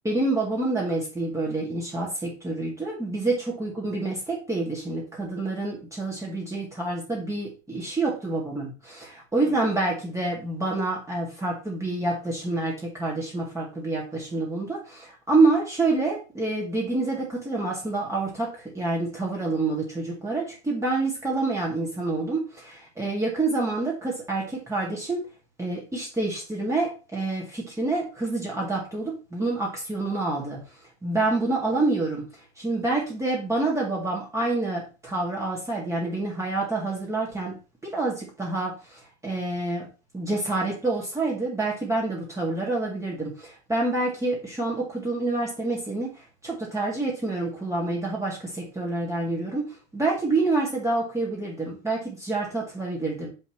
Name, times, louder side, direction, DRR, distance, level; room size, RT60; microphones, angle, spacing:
voice 1, 0.0-25.3 25.6-30.6 31.0-32.2 32.6-37.6 37.8-39.9 40.1-46.1 46.4-53.3, right 2 dB, 10° right, -3 dB, 2.0 m, -27 dB
7.0 x 5.4 x 3.0 m, 0.32 s
supercardioid pair, 120°, 35 cm